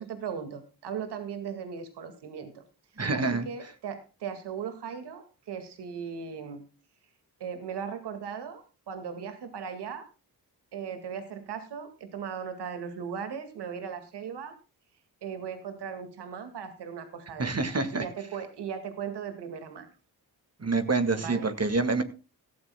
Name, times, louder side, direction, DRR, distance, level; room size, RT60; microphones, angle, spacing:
voice 1, 0.0-2.6 3.1-6.6 7.4-8.6 8.9-10.0 10.7-14.5 15.2-17.5 17.9-19.9 21.2-21.5, right 7 dB, 90° right, 8 dB, 2.1 m, -38 dB
voice 2, 3.0-3.5 17.4-18.0 20.6-22.0, right 3 dB, 40° right, 8 dB, 1.9 m, -27 dB
17.5 x 13.0 x 2.3 m, 0.33 s
cardioid pair, 55°, 39 cm